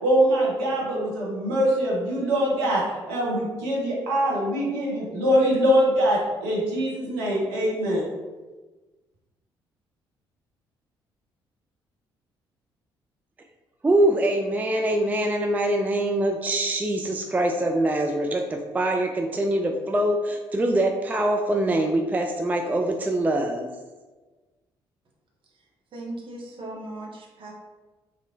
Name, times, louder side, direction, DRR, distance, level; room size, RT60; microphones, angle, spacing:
voice 1, 0.0-2.8 3.1-8.0, equal, 70° right, -4 dB, 0.8 m, -23 dB
voice 2, 13.8-23.7, right 1 dB, 15° right, 4 dB, 0.3 m, -24 dB
voice 3, 25.9-27.5, right 1 dB, 45° right, -1 dB, 0.9 m, -37 dB
3.5 x 3.2 x 2.4 m, 1.2 s
figure-of-eight pair, 45°, 12 cm